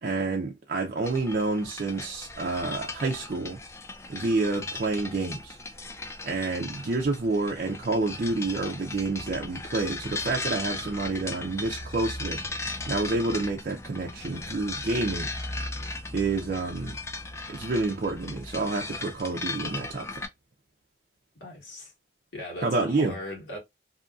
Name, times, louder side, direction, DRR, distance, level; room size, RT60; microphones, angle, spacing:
voice 1, 0.0-3.6 4.1-5.6 6.2-12.4 12.8-15.3 16.1-17.0 17.5-20.2 22.6-23.1, right 3 dB, 50° right, 0.4 m, -28 dB
sound 1, 1.0-20.3, left 2 dB, 15° left, 0.3 m, -37 dB
voice 2, 21.4-21.9 22.3-23.6, left 1 dB, 75° left, 1.5 m, -38 dB
2.7 x 2.5 x 2.3 m
head